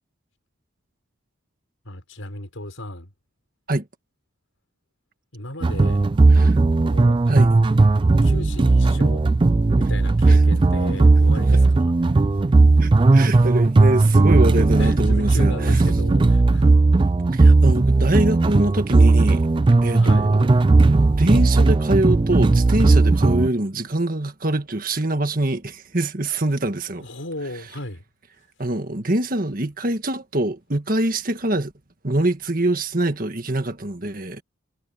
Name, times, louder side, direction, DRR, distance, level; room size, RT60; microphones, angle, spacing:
voice 1, 1.8-3.1 5.3-6.1 6.8-7.2 8.2-9.3 9.8-11.9 14.8-16.7 19.9-20.3 26.9-28.0, left 1 dB, 80° left, 5.8 m, -35 dB
sound 1, 5.6-23.5, right 3 dB, 25° right, 0.3 m, -16 dB
voice 2, 12.8-15.5 17.3-19.4 19.8-20.7 21.1-27.1 28.6-31.7 32.0-34.4, right 1 dB, 45° right, 1.7 m, -24 dB
head